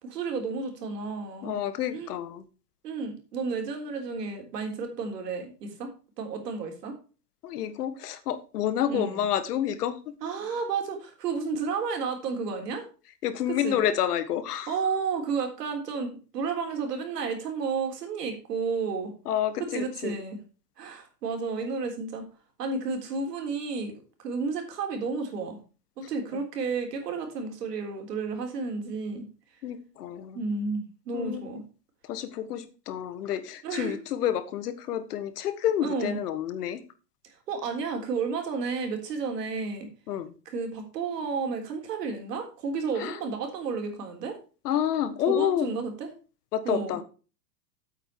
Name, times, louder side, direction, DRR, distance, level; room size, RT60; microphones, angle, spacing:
voice 1, 0.0-1.6 1.9-2.1 2.8-5.9 6.2-7.0 8.9-9.2 10.2-12.9 13.5-13.8 14.7-19.1 19.6-20.4 20.8-22.3 22.6-25.6 26.0-29.2 30.3-31.6 33.6-34.0 35.8-36.2 37.2-39.9 40.5-44.4 45.3-46.1 46.6-47.0, right 4 dB, 80° right, 4 dB, 3.7 m, -32 dB
voice 2, 1.4-2.4 7.4-10.0 13.2-14.7 19.2-20.2 29.6-30.4 31.1-31.4 32.1-36.8 40.1-40.3 43.0-43.2 44.6-45.7 46.5-47.0, left 10 dB, 70° left, 12 dB, 1.6 m, -29 dB
8.6 x 8.4 x 4.6 m, 0.35 s
hypercardioid pair, 130°, 48 cm